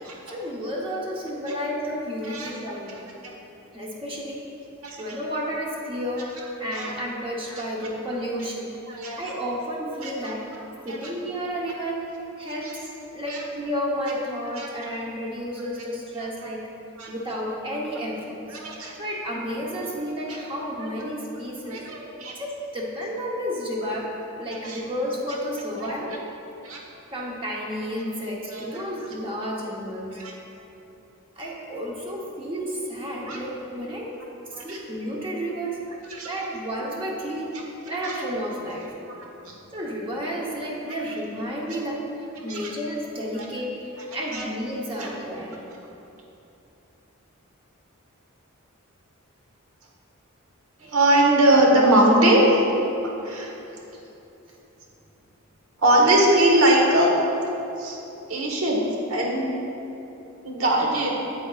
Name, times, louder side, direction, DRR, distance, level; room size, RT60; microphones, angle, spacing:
voice 1, 0.3-3.0 3.7-4.4 5.0-8.8 9.2-10.5 10.8-12.0 12.4-16.6 17.1-18.4 19.0-21.8 22.3-24.1 24.4-26.2 27.1-30.2 31.4-34.2 34.6-35.8 36.2-37.6 37.8-38.9 39.7-42.1 42.4-45.6, equal, 25° right, -4 dB, 0.9 m, -31 dB
voice 2, 8.9-9.2 10.0-10.3 10.9-11.0 12.6-12.7 13.3-13.4 14.6-14.9 16.4-16.5 17.0-17.1 18.5-18.9 20.3-20.4 20.8-20.9 21.7-22.3 24.6-24.8 25.8-25.9 26.6-26.8 28.5-28.8 30.2-30.3 33.3-33.4 34.5-34.8 36.1-36.3 38.0-38.2 39.4-39.5 42.5-42.6 44.3-44.5 45.0-45.1 50.8-52.6 53.2-53.5 55.8-57.1 57.8-58.0 58.3-59.5 60.4-61.2, right 1 dB, 70° right, -1 dB, 1.3 m, -21 dB
8.7 x 8.2 x 2.4 m, 3.0 s
head